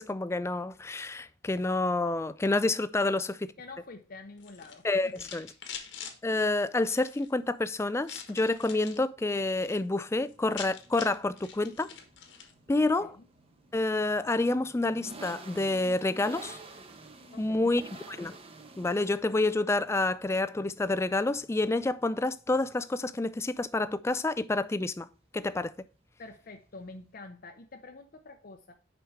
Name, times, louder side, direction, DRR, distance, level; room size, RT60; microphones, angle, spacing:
voice 1, 0.0-3.3 4.8-5.5 6.2-11.9 12.7-13.1 13.7-16.6 17.4-18.4 18.8-25.1 25.3-25.7, left 2 dB, 15° left, 0.3 m, -28 dB
voice 2, 3.6-5.1 13.0-13.3 17.3-17.7 26.2-28.7, left 3 dB, 45° left, 0.6 m, -47 dB
sound 1, 4.4-6.2 6.8-7.3 8.0-9.0 9.4-9.8 10.1-10.2 10.3-12.5, left 7 dB, 70° left, 1.3 m, -44 dB
sound 2, 9.2-27.1, right 2 dB, 30° right, 0.9 m, -52 dB
6.2 x 5.2 x 4.6 m
head